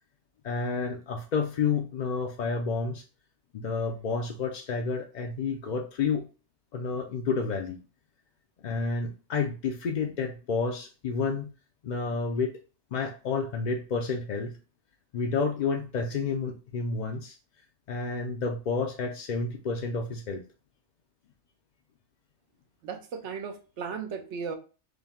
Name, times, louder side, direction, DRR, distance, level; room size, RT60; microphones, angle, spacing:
voice 1, 0.4-3.0 3.5-6.3 6.7-7.8 8.6-11.5 11.8-12.6 12.9-14.6 15.1-17.4 17.9-20.4, left 4 dB, 60° left, 2 dB, 0.5 m, -30 dB
voice 2, 22.8-24.5, right 6 dB, 75° right, 6 dB, 1.0 m, -36 dB
4.9 x 2.1 x 3.5 m, 0.34 s
omnidirectional pair, 1.2 m